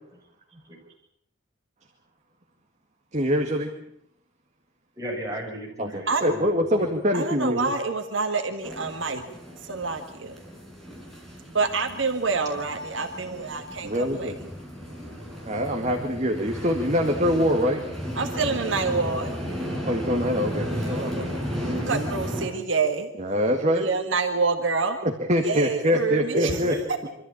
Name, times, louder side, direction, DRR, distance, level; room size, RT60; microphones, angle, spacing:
voice 1, 3.1-3.7 5.8-7.7 13.8-14.4 15.5-17.8 19.8-21.3 21.5-22.1 23.2-23.9 25.0-26.7, equal, 35° right, 3 dB, 2.0 m, -24 dB
voice 2, 5.0-6.8 24.0-24.1 26.3-27.1, equal, 15° right, -2 dB, 6.9 m, -36 dB
voice 3, 7.1-9.2 9.6-10.4 11.5-14.3 18.2-19.3 20.9-21.3 21.9-23.1 23.7-25.0 25.4-26.6, right 4 dB, 70° right, 5 dB, 1.8 m, -27 dB
sound 1, 8.6-22.5, equal, ahead, 5.4 m, -34 dB
25.0 x 14.0 x 8.7 m, 0.71 s
head